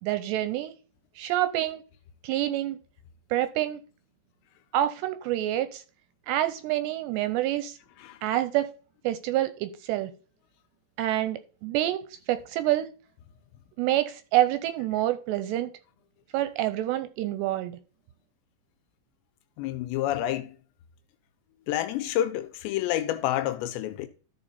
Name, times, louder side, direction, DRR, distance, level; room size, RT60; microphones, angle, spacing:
voice 1, 0.0-0.7 1.2-1.8 2.2-2.8 3.3-3.8 4.7-5.8 6.3-7.8 8.2-8.7 9.0-10.1 11.0-12.9 13.8-15.7 16.3-17.8, right 14 dB, 80° right, 2.6 m, -27 dB
voice 2, 19.6-20.6 21.7-24.1, left 13 dB, 85° left, 2.7 m, -29 dB
13.5 x 4.8 x 4.1 m
omnidirectional pair, 5.3 m